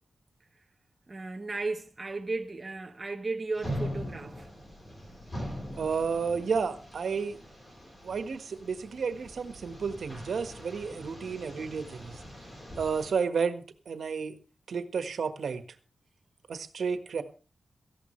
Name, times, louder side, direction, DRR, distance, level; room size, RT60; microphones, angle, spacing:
voice 1, 1.1-4.5, right 3 dB, 25° right, 1.2 m, -35 dB
sound 1, 3.6-13.1, equal, 25° left, 4.1 m, -41 dB
voice 2, 5.8-7.4 8.0-12.2 12.8-14.4 14.7-15.6 16.5-17.2, right 5 dB, 90° right, 1.5 m, -31 dB
18.0 x 14.5 x 3.3 m
wide cardioid pair, 175°, 0 cm